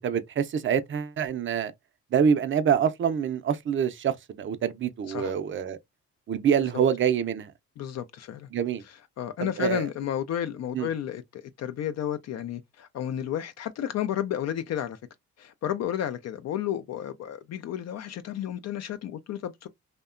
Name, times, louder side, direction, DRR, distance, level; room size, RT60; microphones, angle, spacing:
voice 1, 0.0-1.7 2.1-5.8 6.3-7.5 8.5-8.8 9.4-9.8 10.7-10.9, right 8 dB, 40° right, 0.5 m, -26 dB
voice 2, 7.8-8.5 9.2-15.0 15.4-19.7, left 10 dB, 60° left, 0.4 m, -32 dB
2.7 x 2.2 x 2.4 m
cardioid pair, 90°, 30 cm